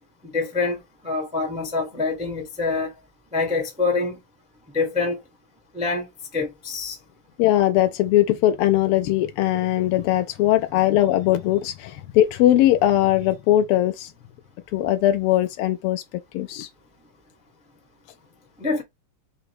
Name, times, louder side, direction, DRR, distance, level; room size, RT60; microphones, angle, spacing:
voice 1, 0.2-2.9 3.3-4.2 4.7-5.2 5.7-6.1 6.3-7.0 18.6-18.8, left 4 dB, 5° right, 0.7 m, -25 dB
voice 2, 7.4-14.1 14.7-16.0 16.3-16.7, left 13 dB, 90° left, 1.5 m, -20 dB
4.9 x 2.0 x 4.7 m
omnidirectional pair, 2.4 m